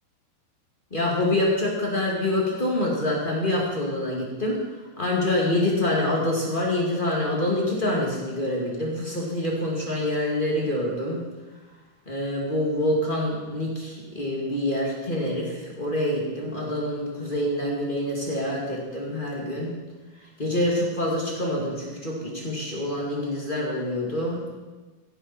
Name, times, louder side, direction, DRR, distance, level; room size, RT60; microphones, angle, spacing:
voice 1, 0.9-4.6 5.0-11.2 12.0-19.7 20.4-24.5, left 1 dB, 20° left, -3 dB, 1.6 m, -26 dB
15.5 x 11.0 x 4.4 m, 1.2 s
omnidirectional pair, 4.4 m